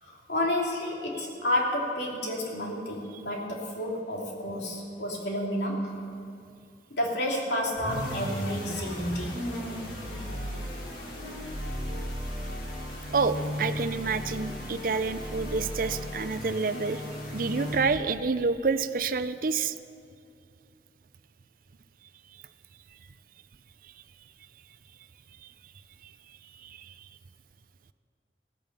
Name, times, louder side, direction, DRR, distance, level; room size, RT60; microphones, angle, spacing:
voice 1, 0.0-6.0 6.9-9.5, left 1 dB, 70° left, -2 dB, 2.9 m, -30 dB
sound 1, 7.7-18.1, equal, 90° left, 4.1 m, -35 dB
voice 2, 13.1-17.0 17.3-19.7, right 4 dB, 50° right, 12 dB, 0.5 m, -28 dB
17.0 x 8.9 x 6.7 m, 2.5 s
head